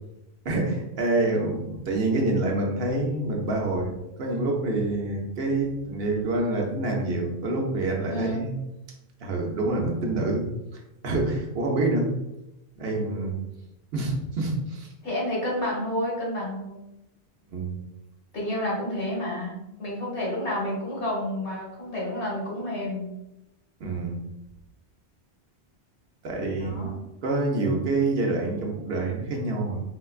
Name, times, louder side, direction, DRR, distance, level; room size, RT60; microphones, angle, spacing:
voice 1, 0.4-3.9 4.2-8.5 9.2-10.5 10.7-12.1 12.8-13.4 13.9-14.9 17.5-17.7 23.8-24.2 26.2-26.9 27.2-29.8, right 2 dB, 65° right, 0 dB, 0.9 m, -27 dB
voice 2, 8.1-8.5 15.0-16.8 18.3-23.1 26.6-26.9, left 1 dB, 85° left, -5 dB, 1.6 m, -30 dB
4.3 x 2.2 x 2.3 m, 0.89 s
omnidirectional pair, 1.1 m